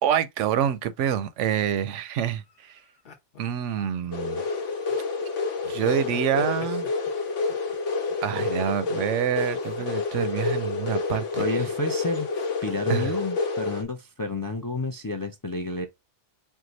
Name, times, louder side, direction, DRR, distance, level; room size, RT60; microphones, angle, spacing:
voice 1, 0.0-2.8 3.4-4.4 5.7-6.9 8.2-11.4 12.9-13.1, right 9 dB, 85° right, 0.9 m, -27 dB
sound 1, 1.9-4.1 4.8-5.1 5.6-7.8 8.1-9.0 9.4-10.6 10.9-11.9 12.3-13.1, left 5 dB, 55° left, 1.0 m, -47 dB
sound 2, 4.1-13.8, left 4 dB, 75° left, 1.1 m, -28 dB
voice 2, 11.3-12.3 12.6-15.9, left 2 dB, 35° left, 0.3 m, -30 dB
4.6 x 2.2 x 3.9 m
omnidirectional pair, 1.2 m